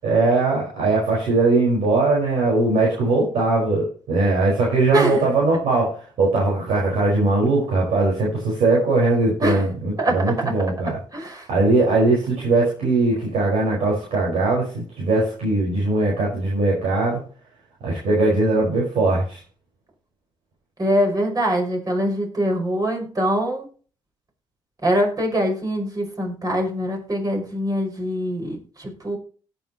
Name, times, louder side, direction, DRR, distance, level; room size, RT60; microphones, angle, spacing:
voice 1, 0.0-11.0 11.5-17.2 17.8-19.4, right 2 dB, 65° right, -4 dB, 4.9 m, -20 dB
voice 2, 10.0-10.5 11.1-11.5 20.8-23.7 24.8-29.2, equal, 30° right, 2 dB, 5.6 m, -23 dB
17.5 x 7.2 x 3.0 m, 0.40 s
hypercardioid pair, 50°, 12 cm